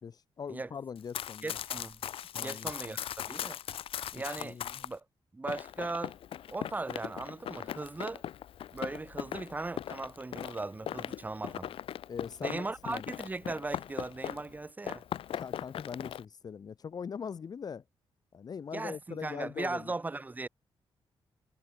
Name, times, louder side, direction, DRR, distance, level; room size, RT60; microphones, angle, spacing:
voice 1, 0.0-1.6 2.3-3.0 4.4-4.8 12.1-13.0 15.3-17.8 18.3-19.9, left 6 dB, 40° left, 2.7 m, -41 dB
Run, 1.0-4.9 5.5-14.6 14.8-16.2, left 10 dB, 70° left, 0.9 m, -39 dB
voice 2, 1.4-2.0 2.4-3.6 4.1-5.0 5.3-6.1 6.5-8.2 8.7-11.7 12.4-15.0 18.7-20.5, right 3 dB, 15° right, 4.8 m, -38 dB
wide cardioid pair, 160°, 10 cm